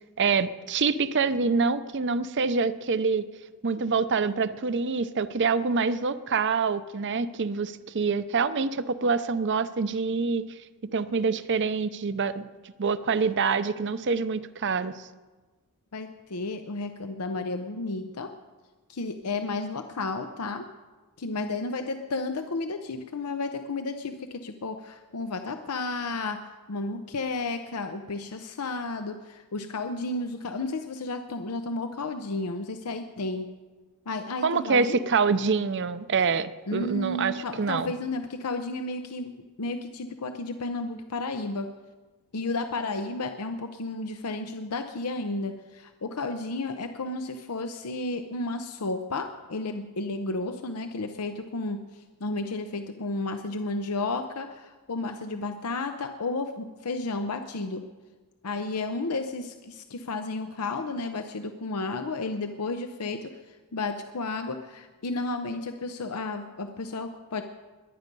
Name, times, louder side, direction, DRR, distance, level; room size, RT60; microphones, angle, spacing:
voice 1, 0.2-3.3 3.6-10.5 10.9-12.5 12.8-15.0 34.4-37.9, right 5 dB, 55° right, 13 dB, 0.6 m, -26 dB
voice 2, 15.9-18.3 18.9-20.6 21.2-26.4 26.7-33.5 34.1-35.0 36.7-39.3 39.6-41.7 42.3-57.8 58.4-63.3 63.7-67.4, left 3 dB, 90° left, 7 dB, 0.7 m, -32 dB
21.5 x 9.4 x 5.4 m, 1.3 s
head